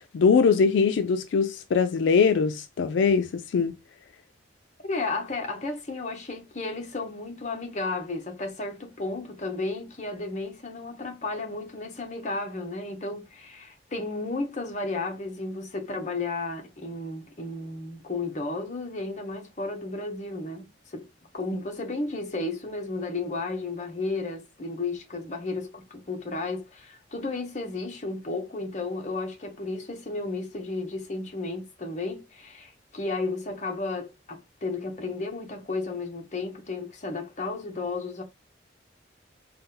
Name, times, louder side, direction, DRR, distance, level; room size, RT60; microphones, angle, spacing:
voice 1, 0.1-3.7, left 5 dB, 80° left, 0.4 m, -22 dB
voice 2, 4.8-21.1 21.3-38.2, left 3 dB, 40° left, 0.9 m, -33 dB
4.0 x 2.1 x 3.8 m
head